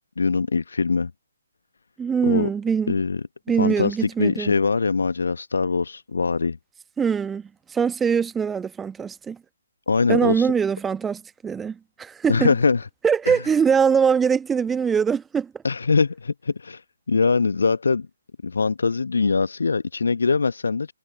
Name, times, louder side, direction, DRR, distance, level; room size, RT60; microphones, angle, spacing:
voice 1, 0.2-1.1 2.2-2.5 2.9-3.2 3.6-6.6 9.9-10.5 12.3-12.8 13.3-13.4 15.6-16.8 17.1-18.1 18.4-20.9, left 4 dB, 60° left, 1.0 m, -22 dB
voice 2, 2.0-2.9 3.5-4.5 7.0-9.4 10.1-12.5 13.0-15.5, right 6 dB, 10° right, 1.3 m, -22 dB
figure-of-eight pair, 135°, 0 cm